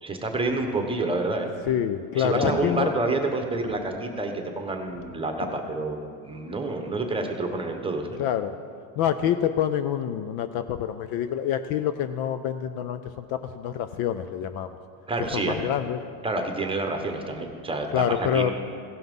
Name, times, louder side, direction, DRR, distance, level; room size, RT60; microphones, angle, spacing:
voice 1, 0.0-1.5 2.1-8.2 15.1-15.6 16.2-17.9 18.2-18.5, right 2 dB, 10° right, 4 dB, 1.1 m, -28 dB
voice 2, 1.6-2.9 5.4-5.5 8.2-8.6 9.0-14.7 15.3-16.0 17.9-18.5, left 10 dB, 50° left, 11 dB, 0.5 m, -26 dB
16.5 x 5.7 x 5.4 m, 2.2 s
supercardioid pair, 115°, 48 cm